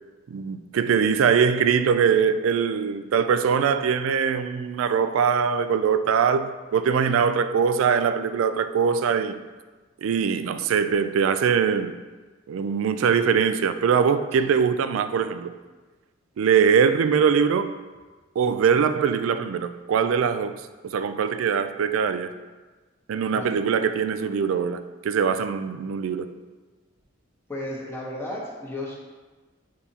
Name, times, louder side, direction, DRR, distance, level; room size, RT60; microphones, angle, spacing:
voice 1, 0.3-9.4 10.0-12.0 12.5-15.5 16.4-17.7 18.4-20.5 20.8-22.3 23.1-26.3, right 6 dB, 85° right, 0.3 m, -22 dB
voice 2, 27.5-28.9, left 1 dB, 15° left, 1.2 m, -33 dB
8.9 x 4.2 x 2.8 m
head